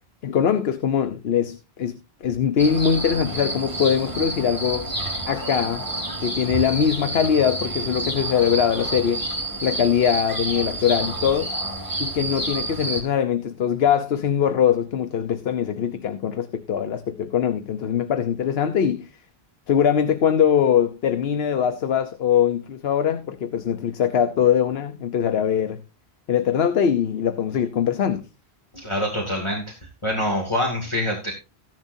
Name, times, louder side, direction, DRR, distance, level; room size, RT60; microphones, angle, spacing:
voice 1, 0.2-2.0 2.2-4.9 5.3-5.8 6.2-9.2 9.6-11.5 12.0-19.1 19.7-25.8 26.3-28.2, left 8 dB, 70° left, 1.1 m, -22 dB
sound 1, 2.6-13.0, right 2 dB, 20° right, 5.4 m, -29 dB
voice 2, 28.8-29.6 30.0-31.3, left 1 dB, 25° left, 2.4 m, -25 dB
15.0 x 10.5 x 2.7 m
omnidirectional pair, 1.1 m